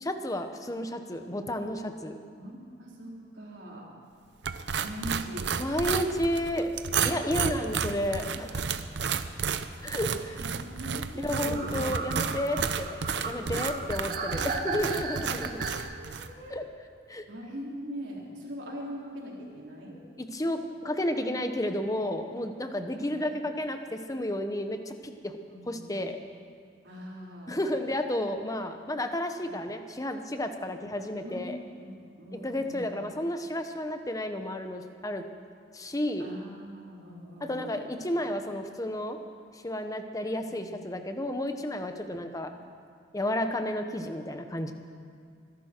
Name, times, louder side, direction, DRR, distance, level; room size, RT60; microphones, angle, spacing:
voice 1, 0.0-2.2 5.6-6.7 7.0-8.6 9.8-10.4 11.2-15.6 16.5-16.6 17.1-17.2 20.3-25.3 25.7-26.2 27.5-31.6 32.4-35.2 35.7-36.3 37.4-39.2 39.5-42.5 43.1-44.7, left 1 dB, 20° left, 7 dB, 1.0 m, -32 dB
voice 2, 2.3-3.9 4.8-5.5 7.0-7.7 10.1-11.8 13.0-14.2 15.1-16.5 17.3-20.0 23.0-23.1 25.5-25.9 26.8-27.7 29.4-29.5 31.2-31.5 31.8-32.9 36.2-37.8 40.3-40.6 42.1-42.5, equal, 90° right, -3 dB, 3.8 m, -42 dB
sound 1, 4.4-16.3, right 6 dB, 70° right, 0.7 m, -32 dB
sound 2, 11.3-15.8, right 4 dB, 55° right, 1.5 m, -35 dB
24.5 x 11.5 x 4.5 m, 2.3 s
head